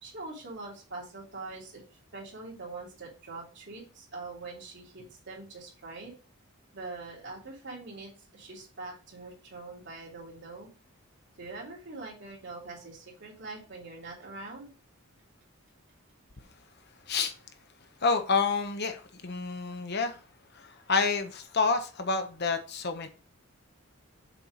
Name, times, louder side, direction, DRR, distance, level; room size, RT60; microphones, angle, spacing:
voice 1, 0.0-1.8 2.1-6.1 6.7-10.7 11.4-14.7, right 3 dB, 55° right, 3.2 m, -43 dB
voice 2, 18.0-20.2 20.5-23.1, left 4 dB, 50° left, 1.0 m, -28 dB
6.9 x 4.5 x 4.8 m
head